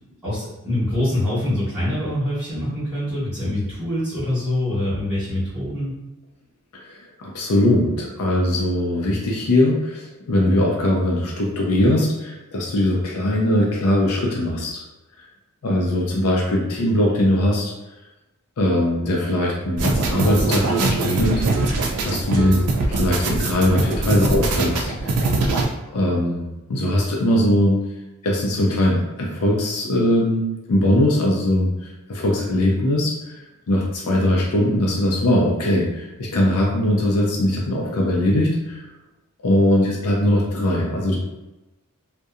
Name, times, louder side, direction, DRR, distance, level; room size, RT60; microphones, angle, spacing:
voice 1, 0.2-6.0, left 1 dB, 10° right, -16 dB, 1.3 m, -24 dB
voice 2, 6.7-14.8 15.6-17.7 18.6-25.1 25.9-27.9 28.2-33.3 33.7-38.8 39.4-41.2, left 1 dB, 85° left, -2 dB, 0.5 m, -21 dB
sound 1, 19.8-25.6, right 2 dB, 85° right, 0.4 m, -22 dB
2.7 x 2.1 x 2.4 m, 1.0 s
head